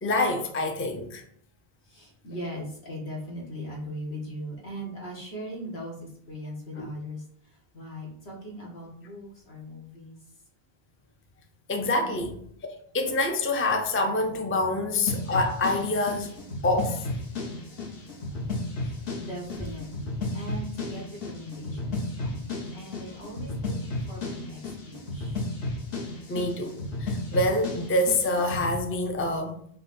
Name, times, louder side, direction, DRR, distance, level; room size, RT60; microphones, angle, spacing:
voice 1, 0.0-1.2 6.8-6.9 11.7-12.4 12.9-16.3 16.6-17.0 18.3-18.4 26.3-26.7 27.0-29.8, left 2 dB, 20° left, 0.4 m, -26 dB
voice 2, 1.8-10.3 18.8-25.4, equal, 90° left, 1.6 m, -40 dB
sound 1, 15.1-28.8, left 2 dB, 70° left, 1.2 m, -33 dB
5.4 x 2.3 x 4.2 m
omnidirectional pair, 1.0 m